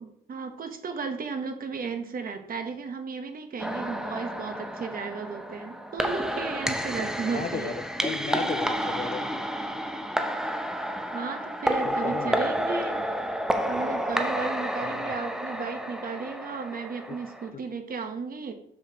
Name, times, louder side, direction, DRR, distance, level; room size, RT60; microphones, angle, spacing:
voice 1, 0.0-7.8 11.1-13.0 13.7-18.5, right 5 dB, 45° right, 7 dB, 1.1 m, -34 dB
sound 1, 3.6-17.5, equal, 5° right, 0.7 m, -30 dB
voice 2, 7.3-7.7 8.0-9.3 11.8-12.5 14.8-15.1 17.1-17.2 17.5-17.6, left 6 dB, 35° left, 12 dB, 0.4 m, -35 dB
7.0 x 6.9 x 3.0 m, 0.71 s
cardioid pair, 90°, 20 cm